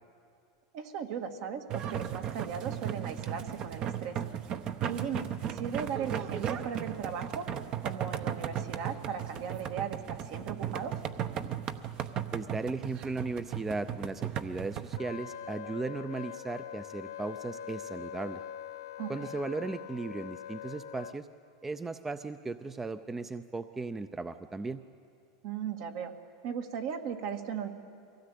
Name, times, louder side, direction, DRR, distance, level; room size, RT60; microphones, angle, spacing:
voice 1, 0.7-4.2 4.8-5.3 5.5-7.5 7.8-11.0 19.0-19.3 25.4-26.1 26.4-27.7, right 7 dB, 65° right, 5 dB, 1.8 m, -37 dB
sound 1, 1.7-15.0, right 9 dB, 40° right, 0.9 m, -36 dB
voice 2, 12.3-18.4 19.1-21.3 21.6-24.8, right 3 dB, 15° right, 11 dB, 0.5 m, -36 dB
Wind instrument woodwind instrument, 15.0-21.2, left 10 dB, 85° left, 0.8 m, -43 dB
23.5 x 17.0 x 8.4 m, 2.4 s
supercardioid pair, 125°, 2 cm